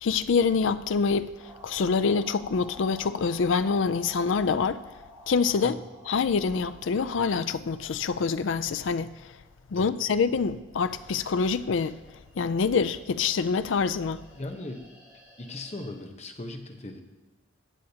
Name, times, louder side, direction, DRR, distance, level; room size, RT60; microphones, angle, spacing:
voice 1, 0.0-1.3 1.6-4.8 5.3-5.8 6.1-9.3 9.7-12.0 12.4-14.2, left 5 dB, 75° left, 0.4 m, -26 dB
sound 1, 1.4-15.9, equal, 15° right, 3.4 m, -53 dB
voice 2, 14.4-14.8 15.4-17.0, left 2 dB, 35° left, 0.9 m, -38 dB
14.5 x 8.5 x 2.8 m
head